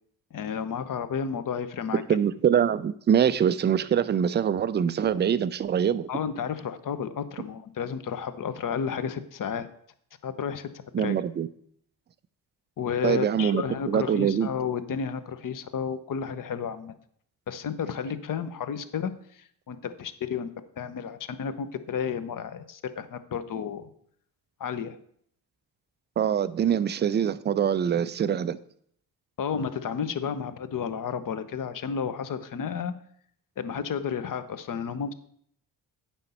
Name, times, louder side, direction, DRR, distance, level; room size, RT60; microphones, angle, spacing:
voice 1, 0.3-2.2 6.1-9.7 10.2-10.7 11.0-11.2 12.8-16.9 17.5-20.5 20.8-23.9 24.6-25.0 29.4-32.9 33.6-35.1, left 7 dB, 40° left, 0.8 m, -32 dB
voice 2, 2.1-6.1 10.9-11.5 13.0-14.5 26.2-28.6, right 8 dB, 25° right, 0.4 m, -24 dB
9.0 x 5.6 x 4.2 m
hypercardioid pair, 45°, 50 cm